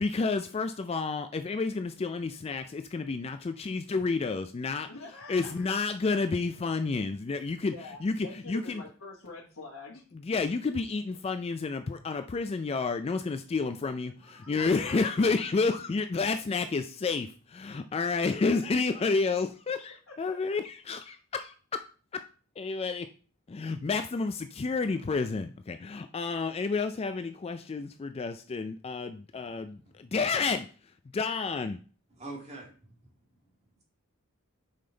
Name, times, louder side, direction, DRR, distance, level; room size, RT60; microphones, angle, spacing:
voice 1, 0.0-4.9 5.3-7.7 8.0-8.2 8.5-8.6 10.3-21.9 22.1-22.2 22.6-23.1 23.5-30.7 31.1-31.8, left 4 dB, 30° left, 8 dB, 0.3 m, -30 dB
voice 2, 4.8-5.8 7.6-10.0 14.2-15.0 20.1-20.6, left 3 dB, 70° left, -5 dB, 1.3 m, -46 dB
voice 3, 29.3-30.1 32.1-33.8, right 2 dB, 30° right, -1 dB, 2.0 m, -48 dB
5.6 x 5.1 x 3.8 m, 0.37 s
head